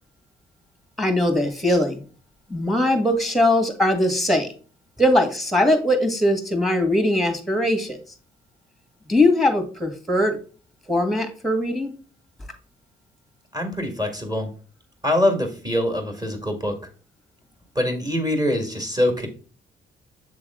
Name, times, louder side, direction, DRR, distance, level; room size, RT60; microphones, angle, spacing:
voice 1, 1.0-2.0 2.5-4.5 5.0-8.0 9.1-10.4 10.9-11.9, left 1 dB, ahead, 6 dB, 1.5 m, -20 dB
voice 2, 13.5-14.5 15.0-16.8 17.8-19.3, left 1 dB, 20° right, 5 dB, 1.9 m, -23 dB
7.6 x 3.5 x 3.6 m, 0.39 s
cardioid pair, 90°, 20 cm